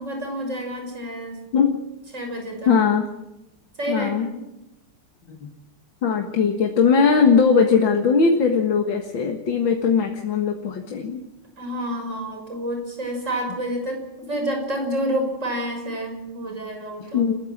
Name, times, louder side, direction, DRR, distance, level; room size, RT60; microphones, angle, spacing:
voice 1, 0.0-1.4 2.1-2.7 3.8-4.4 11.6-17.2, right 1 dB, 35° right, 2 dB, 6.7 m, -29 dB
voice 2, 2.7-3.0 3.9-4.3 5.3-5.5 6.0-11.2 17.1-17.4, left 5 dB, 60° left, 3 dB, 2.4 m, -19 dB
30.0 x 14.5 x 7.4 m, 0.92 s
omnidirectional pair, 2.4 m